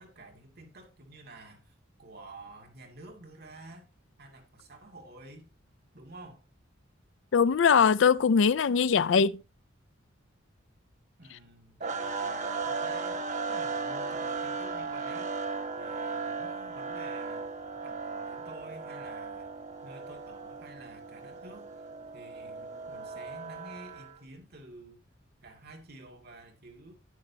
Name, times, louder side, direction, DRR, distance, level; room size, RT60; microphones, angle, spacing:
voice 1, 0.0-3.9 4.2-5.5 5.9-6.4 11.2-15.3 15.8-17.5 17.8-19.5 19.8-21.9 22.1-25.0 25.4-27.0, right 2 dB, 55° right, 2.3 m, -50 dB
voice 2, 7.3-9.4, left 6 dB, 70° left, 0.4 m, -22 dB
sound 1, 11.8-24.2, right 4 dB, 40° right, 1.0 m, -36 dB
10.5 x 8.9 x 2.8 m
head